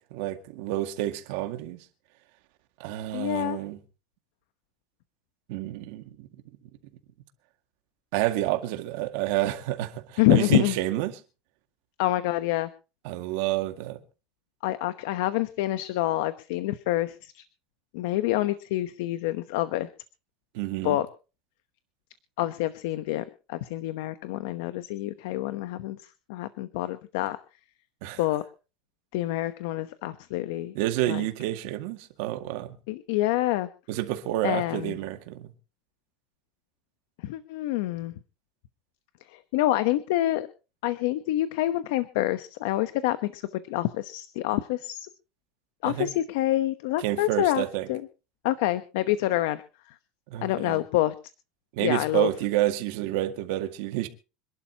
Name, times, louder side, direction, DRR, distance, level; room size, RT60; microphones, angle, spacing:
voice 1, 0.1-1.8 2.8-3.8 5.5-6.3 8.1-11.1 13.0-14.0 20.5-21.0 28.0-28.2 30.7-32.8 33.9-35.5 45.8-46.1 47.0-47.9 50.3-50.8 51.7-54.1, right 15 dB, 75° right, 2.0 m, -29 dB
voice 2, 3.1-3.6 10.2-10.8 12.0-12.7 14.6-17.4 17.9-19.9 20.8-21.1 22.4-26.0 26.3-27.4 28.2-28.4 29.1-30.7 31.1-31.3 32.9-33.7 34.4-35.0 37.2-38.1 39.3-40.5 40.8-43.4 43.7-45.1 45.8-48.0 48.4-49.6 50.4-51.1 51.8-52.3, left 15 dB, 85° left, 1.0 m, -27 dB
26.5 x 12.0 x 2.9 m
cardioid pair, 160°, 0 cm